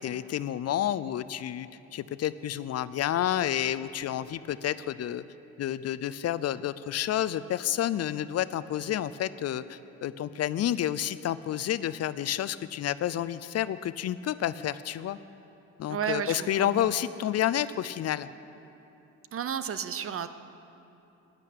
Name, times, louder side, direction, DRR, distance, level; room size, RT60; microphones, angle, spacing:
voice 1, 0.0-5.2 5.6-15.2 15.8-18.3, left 11 dB, 55° left, 15 dB, 0.5 m, -30 dB
voice 2, 15.9-16.9 19.3-20.3, right 8 dB, 45° right, 11 dB, 0.7 m, -32 dB
12.0 x 10.5 x 8.5 m, 2.9 s
cardioid pair, 90°, 30 cm